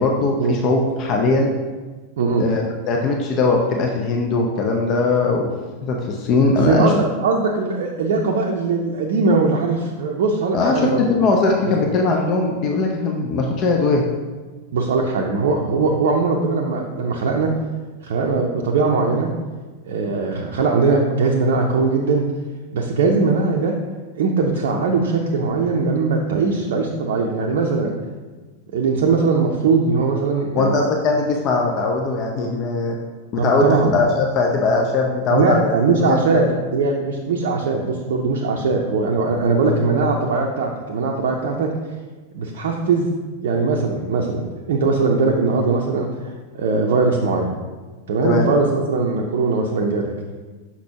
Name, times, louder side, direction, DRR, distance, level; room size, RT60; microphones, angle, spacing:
voice 1, 0.0-1.5 2.4-5.5 5.8-6.9 10.5-14.0 30.6-33.0 33.3-36.4 48.2-48.5, left 3 dB, 35° left, 1 dB, 0.6 m, -20 dB
voice 2, 6.7-11.0 11.6-11.7 14.7-17.5 18.0-19.3 19.9-22.2 22.7-23.7 24.2-27.9 28.7-30.8 33.4-33.9 35.3-41.7 42.3-43.1 43.4-47.5 48.1-50.1, right 4 dB, 55° right, 0 dB, 0.5 m, -20 dB
6.0 x 5.8 x 2.8 m, 1.3 s
figure-of-eight pair, 90°, 0 cm